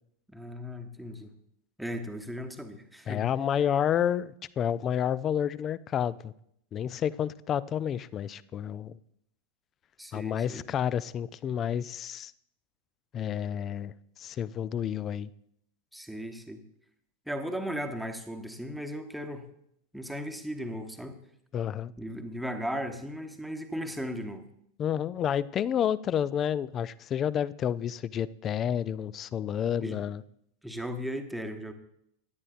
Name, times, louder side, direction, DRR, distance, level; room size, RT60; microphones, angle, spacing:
voice 1, 0.3-1.3 1.8-3.2 10.0-10.6 15.9-16.6 17.3-19.4 19.9-21.2 22.0-24.4 29.8-30.0 30.6-31.7, equal, ahead, 5 dB, 1.0 m, -36 dB
voice 2, 3.1-6.3 6.7-8.9 10.1-12.3 13.1-13.9 14.2-15.3 21.5-21.9 24.8-30.2, left 9 dB, 30° left, 20 dB, 0.4 m, -30 dB
17.0 x 11.0 x 2.5 m, 0.73 s
figure-of-eight pair, 90°, 0 cm